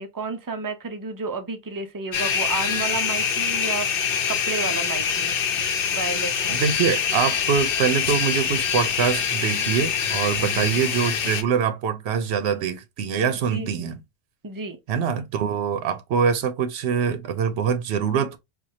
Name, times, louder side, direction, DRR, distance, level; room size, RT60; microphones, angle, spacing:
voice 1, 0.0-5.4 5.9-6.7 10.5-10.8 13.5-13.9 14.4-14.8, right 4 dB, 35° right, 0.3 m, -32 dB
sound 1, 2.1-11.4, left 7 dB, 60° left, 0.8 m, -25 dB
voice 2, 6.5-14.0 14.9-18.4, right 7 dB, 75° right, 0.9 m, -24 dB
4.4 x 2.3 x 2.7 m
omnidirectional pair, 1.1 m